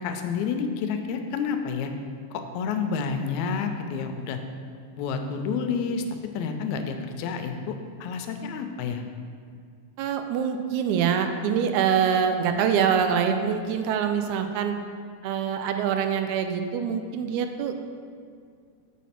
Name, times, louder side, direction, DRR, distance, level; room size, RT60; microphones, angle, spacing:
voice 1, 0.0-1.9 2.3-4.4 5.0-6.0 6.3-7.8 8.0-9.0, left 6 dB, 80° left, 6 dB, 1.8 m, -29 dB
voice 2, 10.0-14.8 15.2-17.7, right 7 dB, 85° right, 7 dB, 1.9 m, -25 dB
7.1 x 4.2 x 5.7 m, 2.2 s
omnidirectional pair, 3.3 m